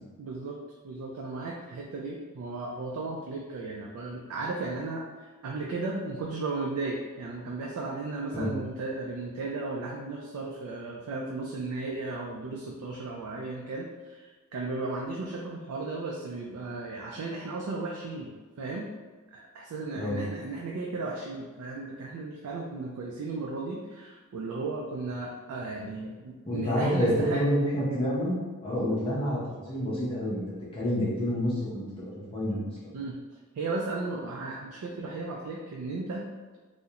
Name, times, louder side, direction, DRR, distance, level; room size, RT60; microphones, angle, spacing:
voice 1, 0.2-0.6 0.8-5.0 5.4-18.9 19.3-27.4 32.9-33.2 33.5-36.3, right 3 dB, 85° right, -1 dB, 0.3 m, -35 dB
voice 2, 26.5-28.4 28.6-29.4 29.7-30.5 30.7-32.6, equal, 25° left, -8 dB, 0.6 m, -28 dB
2.4 x 2.0 x 2.7 m, 1.4 s
head